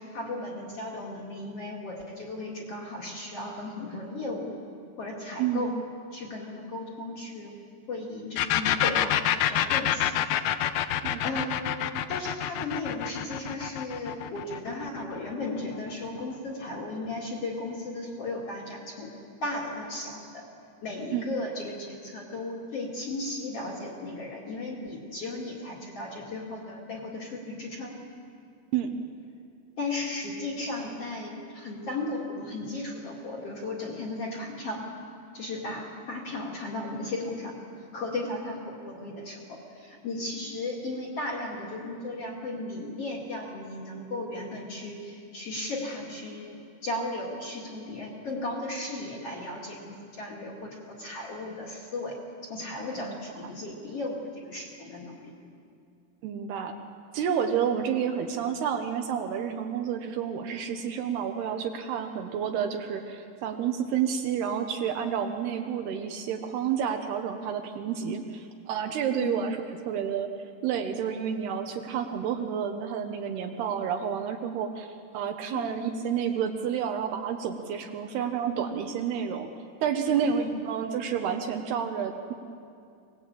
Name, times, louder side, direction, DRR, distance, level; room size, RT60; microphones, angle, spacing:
voice 1, 0.0-4.5 5.0-5.7 6.1-7.6 7.9-10.3 11.2-19.1 19.4-20.4 20.8-28.0 29.8-34.8 35.3-37.6 37.9-46.6 46.8-52.2 52.5-55.3 69.2-69.5 75.5-75.7 80.1-80.6, left 2 dB, 40° left, -1 dB, 2.5 m, -35 dB
voice 2, 5.4-5.7 11.0-11.2 21.1-21.3 28.7-28.9 53.0-53.2 56.2-56.7 57.1-69.6 69.9-70.3 70.6-79.5 79.8-82.3, right 8 dB, 70° right, 6 dB, 2.8 m, -30 dB
sound 1, 8.4-15.9, left 11 dB, 80° left, 2.2 m, -27 dB
22.5 x 20.0 x 8.5 m, 2.4 s
omnidirectional pair, 5.3 m